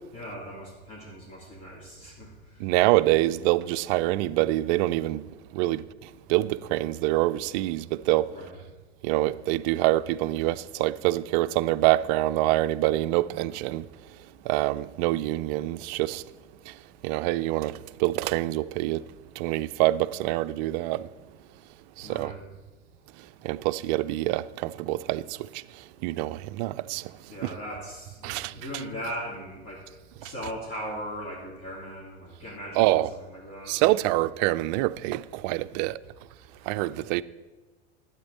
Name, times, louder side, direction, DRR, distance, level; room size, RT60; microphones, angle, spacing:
voice 1, 0.1-2.7 8.3-8.6 22.0-22.5 27.3-29.9 30.2-33.8, equal, 40° left, 3.3 m, -39 dB
voice 2, 2.6-8.3 9.0-13.9 14.4-16.3 16.7-19.1 19.4-21.1 22.0-22.3 23.4-27.1 27.4-27.5 28.2-28.5 30.2-30.3 32.8-33.1 33.7-36.0 36.6-37.2, right 17 dB, 45° right, 0.4 m, -26 dB
12.0 x 8.9 x 4.1 m
hypercardioid pair, 105°, 33 cm